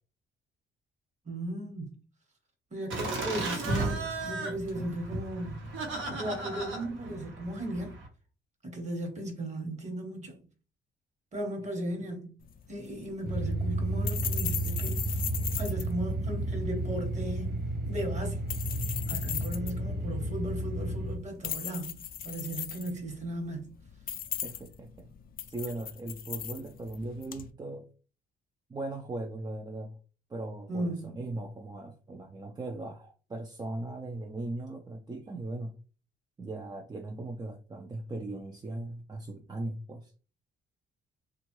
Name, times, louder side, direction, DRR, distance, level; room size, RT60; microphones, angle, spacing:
voice 1, 1.2-2.0 2.7-5.7 6.1-8.0 8.6-10.5 11.3-12.3 12.7-15.3 15.6-17.6 17.9-18.5 19.1-23.8 30.7-31.3, right 1 dB, 35° right, 1.2 m, -36 dB
Laughter, 2.9-8.1, right 2 dB, 75° right, 1.0 m, -35 dB
sound 1, 12.4-27.5, left 9 dB, 45° left, 0.4 m, -39 dB
sound 2, 13.2-21.2, right 1 dB, 50° right, 0.8 m, -32 dB
voice 2, 24.4-25.1 25.5-27.9 28.7-30.0 30.3-35.8 36.4-40.1, right 2 dB, 20° right, 0.4 m, -38 dB
2.9 x 2.4 x 3.0 m
cardioid pair, 90°, 20 cm